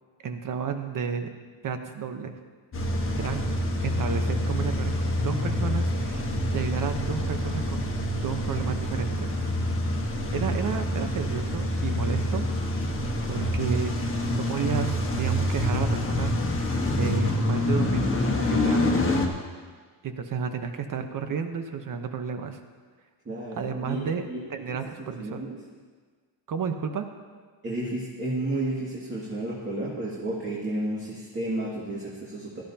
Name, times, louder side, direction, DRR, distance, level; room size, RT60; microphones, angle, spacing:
voice 1, 0.2-1.3 1.6-2.3 3.2-3.5 3.8-9.4 10.3-12.5 13.3-16.3 16.9-19.0 20.0-22.6 23.5-25.4 26.5-27.1, right 6 dB, 45° right, 7 dB, 1.1 m, -32 dB
Car / Engine starting / Idling, 2.7-19.3, left 1 dB, 30° left, 1.4 m, -26 dB
voice 2, 23.2-24.4 25.0-25.6 27.6-32.6, right 1 dB, 25° right, -7 dB, 2.3 m, -32 dB
17.0 x 13.0 x 2.9 m, 1.5 s
cardioid pair, 135°, 44 cm